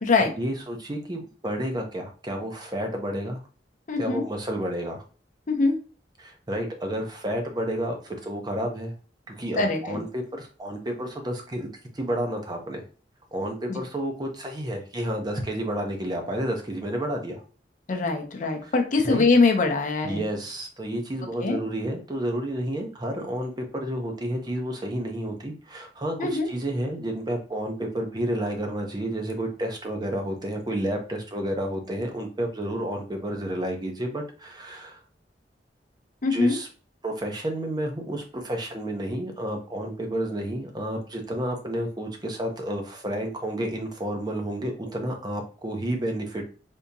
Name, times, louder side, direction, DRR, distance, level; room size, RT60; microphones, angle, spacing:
voice 1, 0.4-3.4 4.0-5.0 6.2-8.9 9.3-11.7 11.9-12.8 13.3-17.4 19.0-19.3 20.0-35.0 36.3-36.7 37.0-46.5, right 1 dB, 25° right, 3 dB, 0.6 m, -30 dB
voice 2, 3.9-4.2 5.5-5.8 9.6-10.0 13.7-13.8 17.9-20.2 21.4-21.6 26.2-26.5 36.2-36.6, left 3 dB, 45° left, 3 dB, 0.6 m, -22 dB
3.6 x 2.7 x 2.6 m, 0.38 s
head